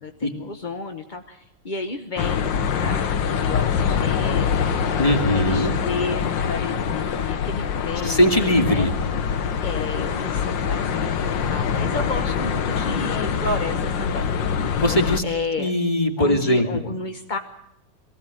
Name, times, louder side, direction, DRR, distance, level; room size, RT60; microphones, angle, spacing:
voice 1, 0.0-5.0 5.4-8.9 9.6-14.5 15.2-15.8 16.2-17.4, left 3 dB, 35° left, 6 dB, 0.9 m, -32 dB
sound 1, 2.2-15.2, left 7 dB, 70° left, 1.8 m, -24 dB
voice 2, 5.0-5.7 8.0-8.9 11.9-12.0 14.8-15.2 15.6-16.9, left 1 dB, 15° left, 5 dB, 2.3 m, -20 dB
23.0 x 16.5 x 9.1 m, 0.83 s
omnidirectional pair, 2.2 m